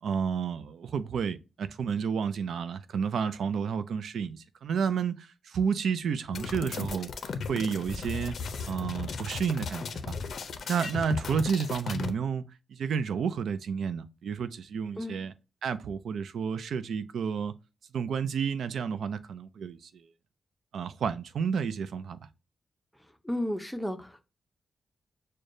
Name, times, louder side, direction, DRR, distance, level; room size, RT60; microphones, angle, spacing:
voice 1, 0.0-7.1 7.5-8.4 8.7-10.2 10.7-15.3 15.6-17.5 17.9-20.1 20.7-22.2, right 6 dB, 90° right, 0.4 m, -31 dB
sound 1, 6.3-12.1, left 5 dB, 65° left, 0.5 m, -36 dB
voice 2, 23.2-24.2, left 1 dB, ahead, 0.5 m, -33 dB
6.4 x 2.2 x 2.5 m
wide cardioid pair, 150°, 0 cm